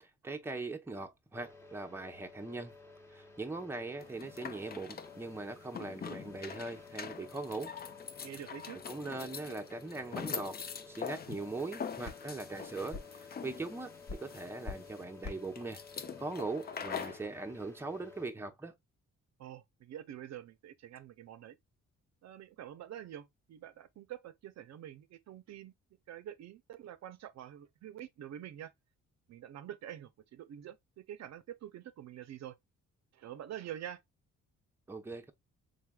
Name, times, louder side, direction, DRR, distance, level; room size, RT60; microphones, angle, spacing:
voice 1, 0.0-2.7 3.1-7.7 8.9-10.6 10.9-18.8 34.9-35.3, right 3 dB, 10° right, 0.7 m, -41 dB
sound 1, 1.3-18.3, left 4 dB, 10° left, 1.0 m, -54 dB
sound 2, 4.0-17.3, left 6 dB, 30° left, 0.5 m, -44 dB
voice 2, 8.2-8.8 19.4-21.6 22.2-25.7 26.1-28.7 29.3-32.6 33.1-34.0, right 11 dB, 60° right, 0.6 m, -46 dB
sound 3, 12.0-17.4, left 3 dB, 60° left, 1.7 m, -49 dB
4.0 x 3.3 x 2.3 m
cardioid pair, 90°, 30 cm